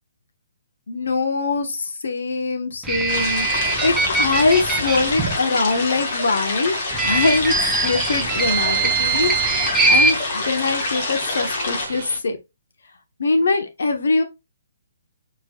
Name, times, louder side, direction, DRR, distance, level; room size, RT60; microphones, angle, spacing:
voice 1, 0.9-7.6 7.8-12.4 13.2-14.2, left 3 dB, 60° left, 1.2 m, -23 dB
sound 1, 2.8-5.4 6.9-10.1, right 4 dB, 10° right, 0.8 m, -22 dB
sound 2, 3.1-11.9, left 3 dB, 40° left, 2.0 m, -27 dB
sound 3, 3.5-12.2, right 5 dB, 45° right, 1.4 m, -36 dB
4.8 x 4.6 x 2.4 m
figure-of-eight pair, 130°, 0 cm